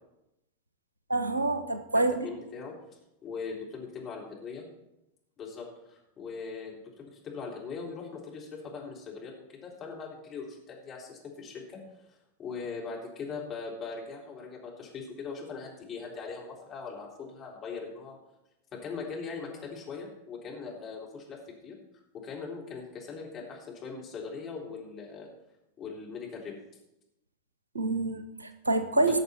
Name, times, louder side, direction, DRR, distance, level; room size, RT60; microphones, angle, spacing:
voice 1, 1.1-2.3 27.7-29.2, right 2 dB, 80° right, 9 dB, 1.0 m, -27 dB
voice 2, 1.9-2.7 3.2-4.7 5.4-11.8 12.4-18.2 18.7-21.8 22.1-25.3 25.8-26.5 29.0-29.2, left 5 dB, 30° left, -2 dB, 3.6 m, -40 dB
18.0 x 6.6 x 4.4 m, 0.88 s
figure-of-eight pair, 90°, 0 cm